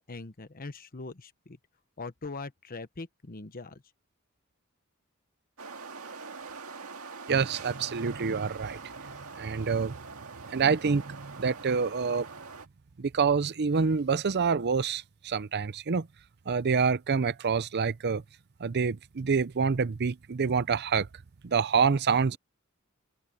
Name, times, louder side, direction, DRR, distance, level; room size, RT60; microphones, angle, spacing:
voice 1, 0.0-1.6 2.0-3.8, left 3 dB, 45° left, 1.0 m, -41 dB
sound 1, 5.6-12.7, right 4 dB, 85° right, 2.0 m, -44 dB
voice 2, 7.3-8.8 9.4-9.9 10.5-12.3 13.0-16.1 16.5-18.2 18.6-21.1 21.4-22.4, right 5 dB, 50° right, 0.6 m, -27 dB
open air
head